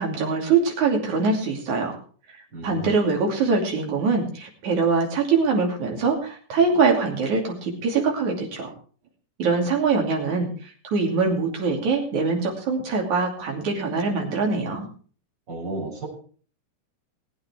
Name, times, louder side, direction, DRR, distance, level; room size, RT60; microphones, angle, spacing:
voice 1, 0.0-2.0 2.6-8.7 9.4-14.9, right 4 dB, 60° right, 1 dB, 4.0 m, -23 dB
voice 2, 2.5-2.9 15.5-16.1, right 2 dB, 30° right, -2 dB, 6.5 m, -32 dB
20.0 x 8.7 x 4.4 m, 0.43 s
omnidirectional pair, 4.0 m